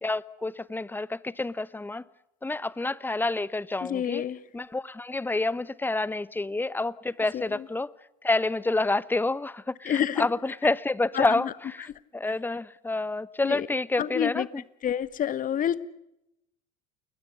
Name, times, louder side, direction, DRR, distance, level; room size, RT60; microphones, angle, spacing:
voice 1, 0.0-2.0 2.4-4.2 4.5-7.9 8.2-14.6, left 2 dB, 10° left, 1.1 m, -28 dB
voice 2, 3.9-4.4 7.3-7.4 9.9-10.3 11.2-11.3 13.4-13.7 14.0-14.5 14.8-15.8, left 9 dB, 40° left, 1.6 m, -27 dB
29.5 x 21.0 x 6.8 m
hypercardioid pair, 80°, 21 cm